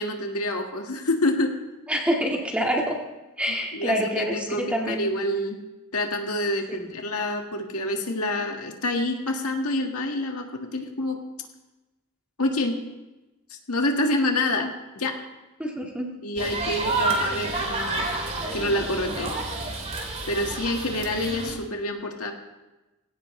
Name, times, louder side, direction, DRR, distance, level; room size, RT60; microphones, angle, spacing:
voice 1, 0.0-1.5 3.5-5.6 5.9-11.2 12.4-12.8 13.5-15.2 16.2-18.1 18.5-19.3 20.3-22.3, left 1 dB, 90° left, 3 dB, 1.8 m, -27 dB
voice 2, 1.9-3.0 3.4-5.1 6.7-6.8 15.6-16.2, equal, 5° right, -1 dB, 1.8 m, -26 dB
sound 1, 16.4-21.6, right 3 dB, 30° right, 2.1 m, -29 dB
19.0 x 16.5 x 3.2 m, 1.1 s
head